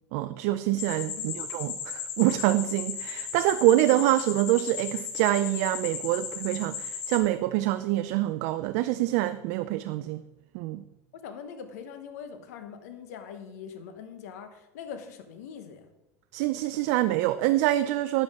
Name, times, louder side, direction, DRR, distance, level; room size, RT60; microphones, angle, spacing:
voice 1, 0.1-10.2 10.5-10.8 16.3-18.2, right 15 dB, 65° right, 11 dB, 0.4 m, -25 dB
sound 1, 0.8-7.2, left 7 dB, 60° left, 1.5 m, -36 dB
voice 2, 3.6-4.0 11.2-15.9, left 7 dB, 80° left, 8 dB, 1.1 m, -42 dB
8.7 x 7.5 x 3.6 m, 0.96 s
supercardioid pair, 105°, 9 cm